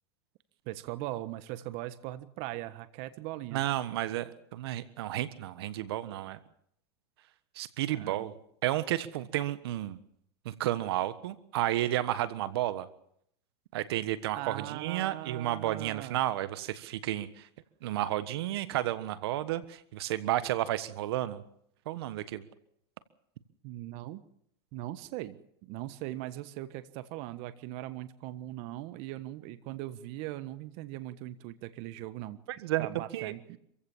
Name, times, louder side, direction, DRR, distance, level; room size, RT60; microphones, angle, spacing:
voice 1, 0.6-3.6 7.9-8.3 14.3-16.2 23.6-24.2 24.7-32.4 32.8-33.6, right 15 dB, 50° right, 12 dB, 1.4 m, -40 dB
voice 2, 3.5-6.4 7.5-8.3 8.6-10.0 10.4-12.9 13.7-17.5 17.8-21.4 21.9-22.4 32.5-33.3, right 14 dB, 70° right, 13 dB, 1.4 m, -32 dB
26.0 x 15.5 x 7.3 m, 0.70 s
supercardioid pair, 140°, 13 cm